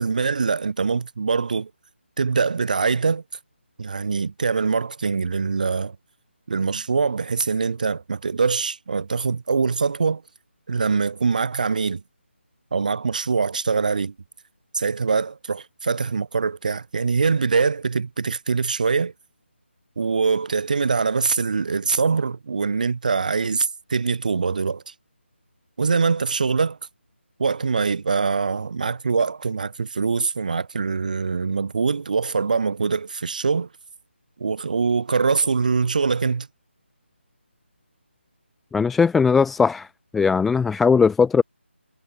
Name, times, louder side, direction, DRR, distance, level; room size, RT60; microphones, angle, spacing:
voice 1, 0.0-1.7 2.2-3.2 3.8-6.0 6.5-10.2 10.7-12.0 12.7-14.1 14.7-19.1 20.0-24.9 25.8-26.8 27.4-33.7 34.4-36.5, right 5 dB, 40° right, 5.5 m, -23 dB
voice 2, 38.7-39.9 40.1-41.4, left 5 dB, ahead, 0.3 m, -18 dB
figure-of-eight pair, 160°, 7 cm